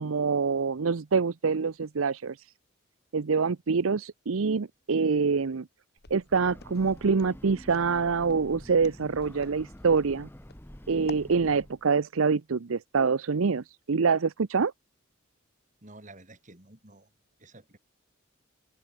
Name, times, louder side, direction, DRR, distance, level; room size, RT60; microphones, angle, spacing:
voice 1, 0.0-2.5 3.1-5.7 6.1-10.3 10.9-14.7, right 5 dB, 85° right, 0.6 m, -26 dB
Walk footsteps, 6.0-11.3, left 3 dB, 50° left, 2.6 m, -48 dB
Breathing / Train, 6.2-11.9, equal, 10° left, 1.4 m, -48 dB
voice 2, 15.8-17.1 17.4-17.8, right 2 dB, 35° right, 3.6 m, -51 dB
open air
head